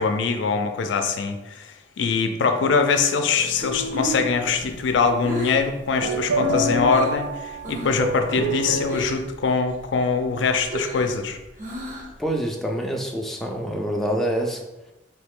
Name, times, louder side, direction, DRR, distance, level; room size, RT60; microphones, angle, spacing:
voice 1, 0.0-11.4, left 5 dB, 80° left, 6 dB, 0.4 m, -23 dB
sound 1, 3.3-8.9, right 1 dB, 80° right, 0.5 m, -29 dB
Breathing, 3.9-7.2 7.6-8.1 8.3-9.4 9.7-12.3, equal, 45° right, 0.8 m, -33 dB
voice 2, 12.2-14.6, right 1 dB, ahead, 0 dB, 0.4 m, -26 dB
3.2 x 2.9 x 3.6 m, 0.99 s
head